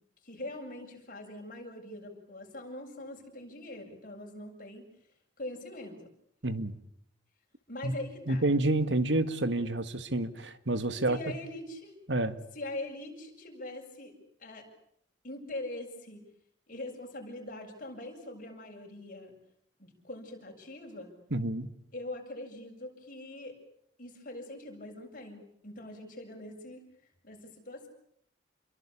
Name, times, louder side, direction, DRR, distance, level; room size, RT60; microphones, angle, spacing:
voice 1, 0.2-4.9 5.4-6.1 7.7-8.5 11.1-11.9 12.5-14.1 14.4-14.7 15.2-16.2 16.7-19.4 19.8-21.1 21.9-23.6 24.0-26.8 27.2-27.9, left 1 dB, 50° left, 2 dB, 7.7 m, -42 dB
voice 2, 6.4-6.7 7.8-7.9 8.3-11.2 12.1-12.4 21.3-21.7, right 2 dB, 80° right, 11 dB, 1.9 m, -29 dB
30.0 x 23.0 x 8.7 m, 0.70 s
head